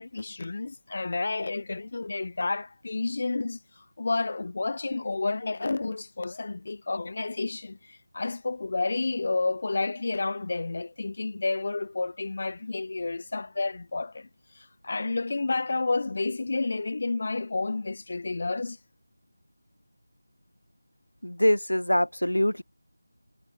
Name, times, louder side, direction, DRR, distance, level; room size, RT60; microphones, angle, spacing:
voice 1, 0.0-14.3 14.5-18.8, left 3 dB, 45° left, 4.3 m, -30 dB
voice 2, 21.2-22.6, left 1 dB, 90° left, 0.9 m, -24 dB
figure-of-eight pair, 170°, 0 cm